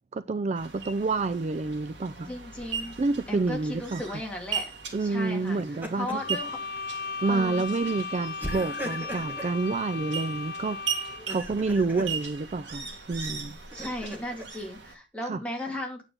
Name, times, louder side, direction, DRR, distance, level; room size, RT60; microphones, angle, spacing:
voice 1, 0.1-2.3 3.0-4.2 4.9-6.2 7.2-10.8 11.3-13.6 15.2-15.4, right 3 dB, 40° right, 0.4 m, -28 dB
sound 1, 0.6-14.9, right 6 dB, 85° right, 2.1 m, -39 dB
voice 2, 2.3-3.0 3.3-4.7 5.0-6.6 7.3-7.6 13.7-16.0, left 1 dB, 5° left, 2.4 m, -36 dB
Laughter, 2.6-3.1 5.4-6.3 6.8-6.9 8.4-9.6 11.1-12.1 13.2-14.4, equal, 10° right, 1.7 m, -39 dB
sound 2, 6.1-11.4, left 4 dB, 55° left, 0.9 m, -36 dB
8.9 x 7.4 x 3.8 m
head